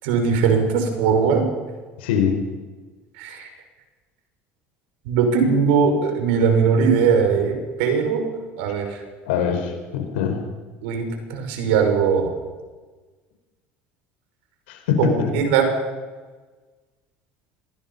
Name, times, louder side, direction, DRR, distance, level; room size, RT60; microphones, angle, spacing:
voice 1, 0.0-1.5 3.2-3.5 5.1-8.2 8.6-8.9 10.8-12.3 15.0-15.7, right 6 dB, 80° right, 5 dB, 5.9 m, -20 dB
voice 2, 2.0-2.3 9.2-10.4 14.7-15.3, left 8 dB, 85° left, 5 dB, 5.0 m, -23 dB
26.0 x 20.5 x 5.7 m, 1.3 s
supercardioid pair, 90°, 6 cm